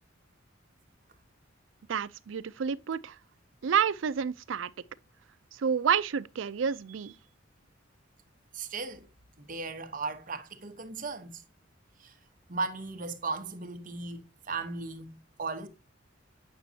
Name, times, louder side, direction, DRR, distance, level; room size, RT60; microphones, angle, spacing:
voice 1, 1.9-3.2 3.6-4.7 5.5-7.1, right 7 dB, 70° right, 0.4 m, -29 dB
voice 2, 8.5-9.1 9.4-11.4 12.0-12.1 12.5-15.7, right 4 dB, 45° right, 1.0 m, -37 dB
8.4 x 6.0 x 2.7 m
head